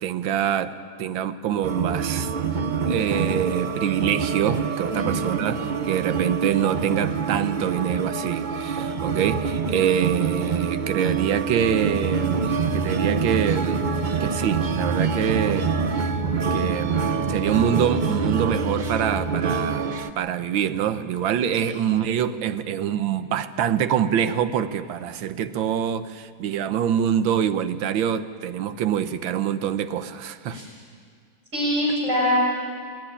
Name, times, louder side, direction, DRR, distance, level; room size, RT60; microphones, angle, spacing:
voice 1, 0.0-2.3 2.9-16.1 16.5-30.6, right 9 dB, 85° right, 11 dB, 1.7 m, -25 dB
sound 1, 1.6-20.1, right 6 dB, 65° right, 0.4 m, -26 dB
voice 2, 4.9-5.5 21.6-21.7 30.5-30.6 31.5-32.4, left 1 dB, 35° right, -3 dB, 6.8 m, -25 dB
sound 2, 11.6-19.6, left 2 dB, 90° left, 0.4 m, -34 dB
28.5 x 12.5 x 9.9 m, 2.1 s
omnidirectional pair, 2.1 m